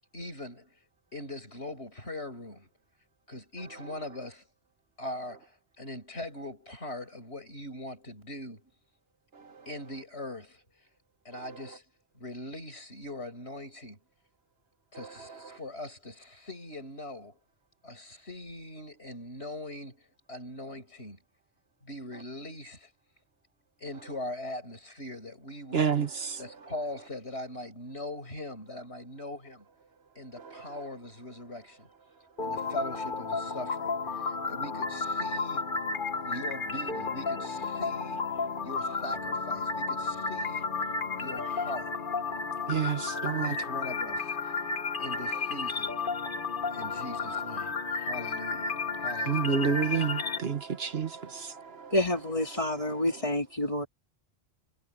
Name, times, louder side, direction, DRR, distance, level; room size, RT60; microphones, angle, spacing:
voice 1, 0.1-0.8 1.1-2.7 3.3-4.4 5.0-8.7 9.7-10.6 11.3-11.8 12.1-14.0 14.9-17.4 17.8-21.2 21.8-22.9 23.8-25.9 26.4-29.7 30.2-31.9 32.4-35.7 36.3-38.3 38.6-40.7 41.2-41.9 43.2-44.4 45.0-46.0 46.7-49.3, left 1 dB, 80° left, 7.0 m, -41 dB
voice 2, 25.7-26.4 30.4-30.8 32.6-32.7 42.7-43.6 46.7-46.9 49.3-51.9 52.9-53.0, right 6 dB, 65° right, 1.5 m, -30 dB
sound 1, 32.4-50.4, left 4 dB, 50° left, 1.3 m, -32 dB
voice 3, 51.9-53.9, left 1 dB, 30° left, 3.9 m, -28 dB
omnidirectional pair, 1.1 m